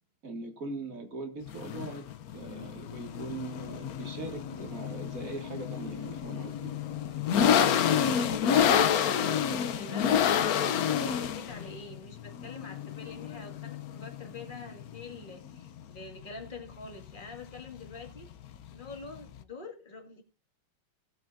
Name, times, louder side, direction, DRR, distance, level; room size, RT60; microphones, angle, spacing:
voice 1, 0.2-2.0 2.3-6.7, right 3 dB, 40° right, 4 dB, 2.4 m, -40 dB
sound 1, 1.5-19.4, left 8 dB, 60° left, 1.0 m, -29 dB
voice 2, 7.5-18.3 18.7-20.2, left 4 dB, 25° left, 3 dB, 2.2 m, -44 dB
18.5 x 7.9 x 2.6 m, 0.28 s
omnidirectional pair, 2.3 m